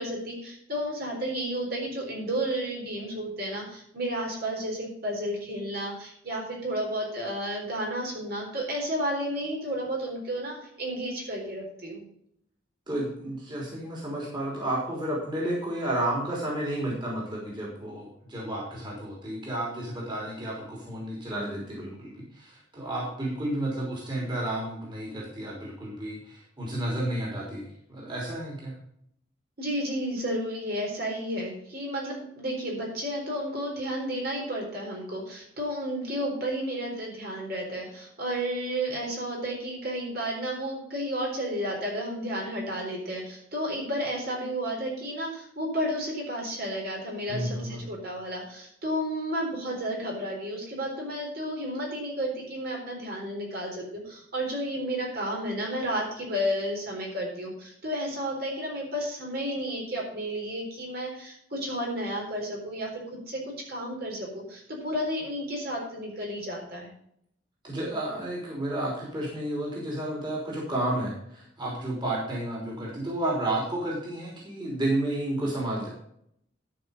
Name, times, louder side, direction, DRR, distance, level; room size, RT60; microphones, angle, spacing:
voice 1, 0.0-12.0 29.6-66.9, equal, 55° right, -2 dB, 4.2 m, -32 dB
voice 2, 12.9-28.7 47.3-47.9 67.6-75.9, right 1 dB, 25° right, -4 dB, 3.3 m, -31 dB
12.0 x 5.9 x 5.2 m, 0.71 s
head